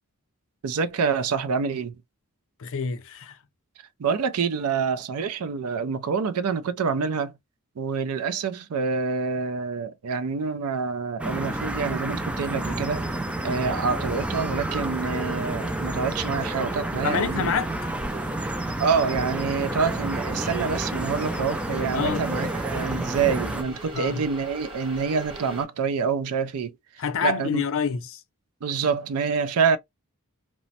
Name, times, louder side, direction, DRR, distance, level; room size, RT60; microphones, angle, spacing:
voice 1, 0.6-2.0 4.0-7.4 7.8-13.0 13.4-17.5 18.8-26.7 27.2-27.6 28.6-29.8, right 5 dB, 75° right, 0.4 m, -26 dB
voice 2, 2.6-3.4 17.0-17.7 21.9-22.2 23.9-24.2 27.0-28.2, left 6 dB, 60° left, 0.5 m, -27 dB
sound 1, 11.2-23.6, right 1 dB, 5° right, 0.3 m, -30 dB
sound 2, 13.7-25.7, right 1 dB, 25° right, 1.5 m, -43 dB
3.0 x 2.1 x 2.7 m
head